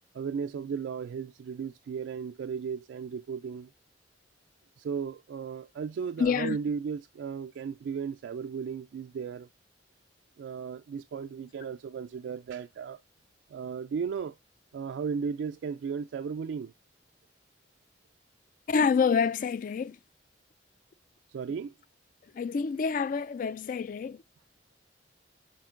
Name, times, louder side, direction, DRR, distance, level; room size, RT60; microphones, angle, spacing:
voice 1, 0.1-3.7 4.8-9.5 10.4-13.0 13.5-14.4 14.7-16.7 21.3-21.7, right 6 dB, 80° right, 0.3 m, -35 dB
voice 2, 6.2-6.6 18.7-20.0 22.3-24.2, left 6 dB, 50° left, 0.3 m, -27 dB
10.0 x 4.4 x 2.4 m
head